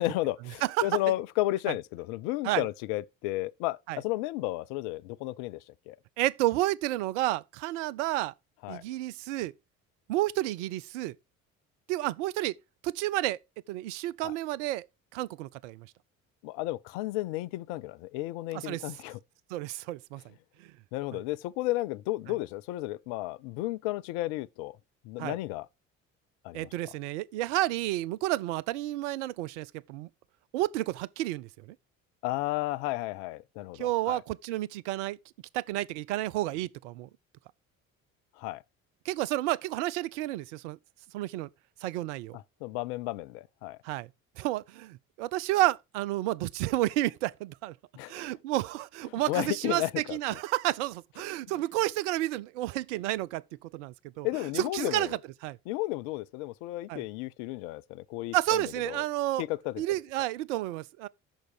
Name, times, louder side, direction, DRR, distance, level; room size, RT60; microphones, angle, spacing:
voice 1, 0.0-6.0 8.6-8.8 14.2-14.3 16.4-19.2 20.9-24.8 25.0-25.7 26.4-26.9 32.2-34.2 38.4-38.6 42.3-43.8 48.0-48.2 49.1-50.2 54.2-55.2 55.7-59.0 59.4-59.8, left 17 dB, 55° left, 0.6 m, -33 dB
voice 2, 0.6-1.0 2.4-2.7 3.9-4.0 6.2-8.3 8.7-9.5 10.1-11.2 11.9-12.5 12.8-13.4 13.7-14.9 15.1-15.9 18.6-18.8 19.5-20.2 25.2-25.4 26.5-30.1 30.5-31.8 33.7-35.2 35.5-37.1 39.0-40.8 41.1-41.5 41.8-42.4 43.8-44.1 44.4-47.7 48.1-54.3 54.6-55.6 56.9-57.0 58.3-59.4 59.8-61.1, right 16 dB, 60° right, 0.6 m, -31 dB
9.0 x 6.4 x 4.9 m
figure-of-eight pair, 55°, 40 cm